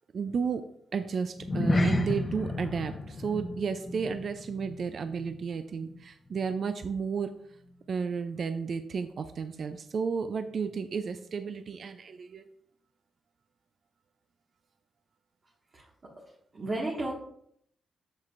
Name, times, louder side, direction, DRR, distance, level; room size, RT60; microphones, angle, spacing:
voice 1, 0.1-0.6 0.9-7.3 7.9-12.5, right 5 dB, 55° right, 9 dB, 0.4 m, -32 dB
sound 1, 1.4-6.0 6.3-6.6 7.0-7.1, left 2 dB, 30° left, 0.8 m, -32 dB
voice 2, 16.5-17.1, right 2 dB, 35° right, -4 dB, 1.7 m, -32 dB
7.6 x 7.4 x 2.5 m, 0.70 s
cardioid pair, 105°, 0 cm